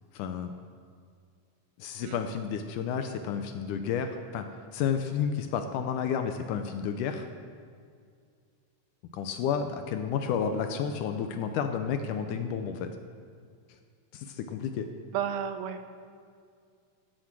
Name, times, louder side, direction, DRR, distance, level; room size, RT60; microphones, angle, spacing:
voice 1, 0.1-0.5 1.8-4.5 4.7-7.3 9.1-12.9 14.1-14.9, left 7 dB, 80° left, 7 dB, 2.0 m, -31 dB
voice 2, 15.1-15.8, right 9 dB, 90° right, 9 dB, 2.6 m, -32 dB
15.0 x 7.6 x 6.0 m, 2.2 s
omnidirectional pair, 4.1 m